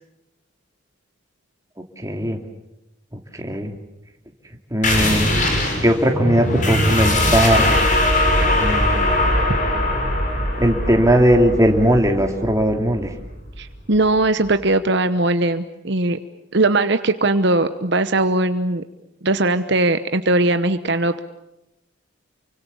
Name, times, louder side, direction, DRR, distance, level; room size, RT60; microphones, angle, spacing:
voice 1, 2.0-2.4 3.3-3.8 4.7-5.3 5.8-7.9 8.6-9.1 10.6-13.1, equal, 15° right, 3 dB, 2.7 m, -18 dB
sound 1, 4.8-14.1, left 1 dB, 40° left, 6.0 m, -20 dB
voice 2, 13.6-16.2 16.5-18.8 19.2-21.2, right 2 dB, 60° right, 10 dB, 1.0 m, -19 dB
29.0 x 24.5 x 7.1 m, 0.91 s
head